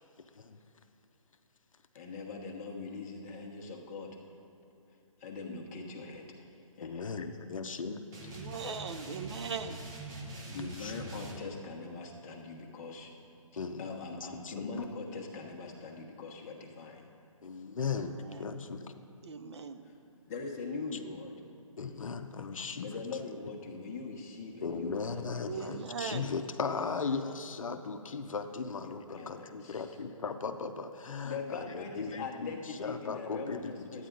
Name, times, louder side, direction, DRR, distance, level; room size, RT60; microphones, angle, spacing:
voice 1, 1.9-4.2 5.2-7.1 10.5-13.1 13.8-17.1 19.8-21.4 22.8-25.7 28.7-29.9 31.2-34.1, left 4 dB, 30° left, -1 dB, 1.2 m, -42 dB
voice 2, 6.8-8.0 9.0-9.1 10.8-10.9 13.6-13.8 14.4-14.8 17.4-18.8 21.8-22.9 24.6-34.1, left 5 dB, 70° left, 8 dB, 0.7 m, -37 dB
sound 1, 8.1-11.4, right 2 dB, 15° right, 1.1 m, -43 dB
voice 3, 8.3-9.8 17.9-18.5 19.2-19.8 25.5-26.3, right 6 dB, 50° right, 9 dB, 0.6 m, -39 dB
12.5 x 9.3 x 3.9 m, 2.9 s
figure-of-eight pair, 145°, 18 cm